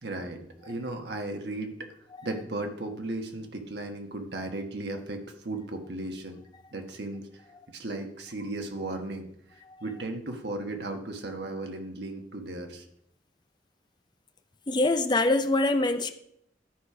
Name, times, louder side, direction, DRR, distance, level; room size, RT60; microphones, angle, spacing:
voice 1, 0.0-1.7 2.2-6.4 6.7-7.4 7.7-9.3 9.8-12.8, right 2 dB, 75° right, 4 dB, 1.4 m, -35 dB
voice 2, 14.7-16.1, left 2 dB, 25° left, 8 dB, 0.6 m, -24 dB
12.0 x 5.1 x 4.9 m, 0.74 s
head